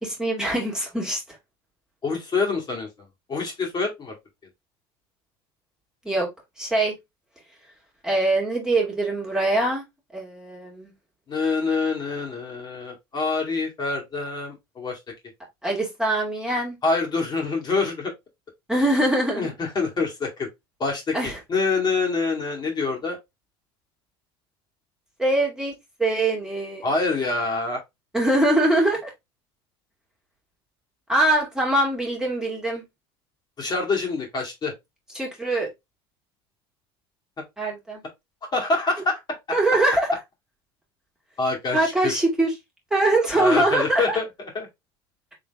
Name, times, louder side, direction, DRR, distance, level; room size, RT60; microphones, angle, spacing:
voice 1, 0.0-1.4 6.0-6.3 6.6-6.9 8.0-9.8 10.1-10.9 15.6-16.8 18.7-19.5 21.1-21.4 25.2-25.7 26.0-26.9 28.1-29.1 31.1-32.8 35.1-35.7 37.6-38.0 39.5-40.2 41.7-42.5 42.9-44.1, right 1 dB, 5° right, 2.0 m, -23 dB
voice 2, 2.0-2.9 3.3-4.2 11.3-15.0 16.8-18.1 19.4-20.5 20.8-23.2 26.8-27.8 33.6-34.7 38.5-39.2 41.4-42.2 43.4-44.3 44.5-44.7, left 3 dB, 30° left, 1.9 m, -26 dB
3.8 x 3.3 x 3.4 m
supercardioid pair, 100°, 13 cm